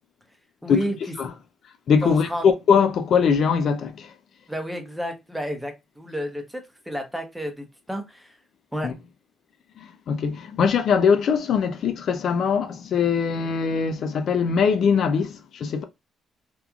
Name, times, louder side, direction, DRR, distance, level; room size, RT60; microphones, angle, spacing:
voice 1, 0.6-1.0 2.0-2.4 4.5-6.6 6.9-8.3 8.7-8.9, equal, 5° right, 0.8 m, -31 dB
voice 2, 1.9-4.1 8.8-8.9 9.8-15.8, left 6 dB, 65° left, 0.4 m, -21 dB
2.9 x 2.4 x 2.3 m
cardioid pair, 90°, 0 cm